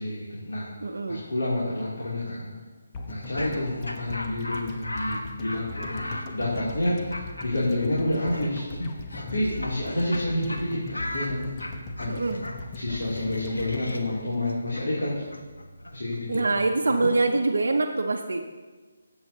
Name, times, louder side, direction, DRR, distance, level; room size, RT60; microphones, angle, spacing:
voice 1, 0.0-0.7 1.1-2.5 3.1-8.6 9.1-11.5 12.0-12.4 12.7-15.3 15.9-16.4 16.9-17.1, left 1 dB, 70° left, -7 dB, 2.7 m, -29 dB
voice 2, 0.8-1.2 12.1-12.4 16.3-18.4, right 3 dB, 70° right, 3 dB, 0.7 m, -24 dB
sound 1, 2.9-15.1 15.4-15.5, left 3 dB, 25° left, 0.9 m, -40 dB
Laughter, 3.1-10.2 10.5-10.6 10.9-16.7, left 1 dB, 90° left, 1.1 m, -37 dB
15.5 x 7.8 x 2.8 m, 1.4 s
figure-of-eight pair, 150°, 0 cm